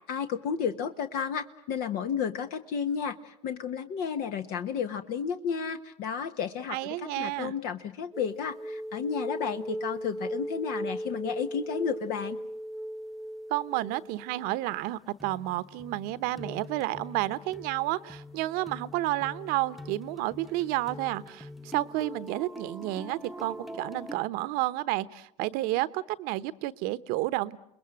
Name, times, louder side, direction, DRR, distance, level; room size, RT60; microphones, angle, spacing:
voice 1, 0.1-12.4, left 7 dB, 65° left, 8 dB, 1.3 m, -32 dB
voice 2, 6.7-7.5 13.5-27.6, right 17 dB, 65° right, 16 dB, 0.9 m, -31 dB
sound 1, 8.1-14.9 15.2-24.2, equal, ahead, 1.0 m, -40 dB
29.0 x 21.0 x 7.8 m, 0.78 s
hypercardioid pair, 75°, 17 cm